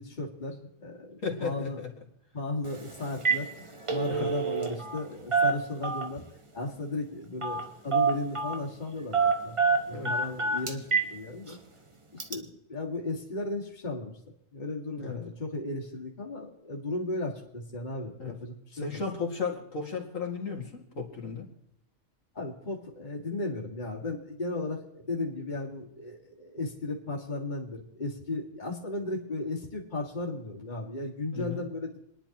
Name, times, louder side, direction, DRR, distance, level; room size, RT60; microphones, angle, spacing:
voice 1, 0.0-1.8 2.3-6.2 6.5-11.6 12.1-14.1 14.5-18.9 22.3-32.0, left 2 dB, 35° left, -1 dB, 2.1 m, -35 dB
voice 2, 1.2-1.9 4.1-4.3 9.9-10.1 15.0-15.2 18.2-18.4 18.7-21.5 31.3-31.6, left 5 dB, 75° left, 0 dB, 2.4 m, -34 dB
Telephone, 2.6-2.8 3.1-3.4 3.7-5.0 5.3-6.3 7.4-7.7 7.9-8.6 9.1-11.1 11.5-11.6 12.2-12.3, right 5 dB, 25° right, 1.0 m, -26 dB
30.0 x 10.5 x 3.0 m, 0.79 s
omnidirectional pair, 1.4 m